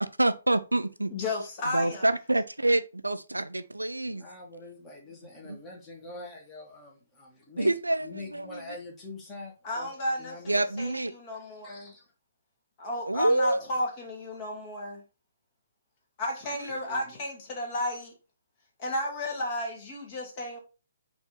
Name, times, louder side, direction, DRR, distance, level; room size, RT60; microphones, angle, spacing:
voice 1, 0.0-1.1 1.7-4.3 5.4-5.6 7.6-8.6 10.5-11.1 13.1-13.6 16.5-16.7, right 2 dB, 90° right, 0.4 m, -27 dB
voice 2, 1.1-2.1 9.6-11.9 12.8-15.0 16.2-18.1 18.8-20.6, left 1 dB, 35° left, 1.7 m, -33 dB
voice 3, 4.0-7.8 8.0-9.9 10.2-10.5 11.6-12.1 13.6-13.7 16.4-17.2, left 2 dB, 20° left, 1.6 m, -45 dB
4.5 x 2.9 x 3.7 m
figure-of-eight pair, 130°, 0 cm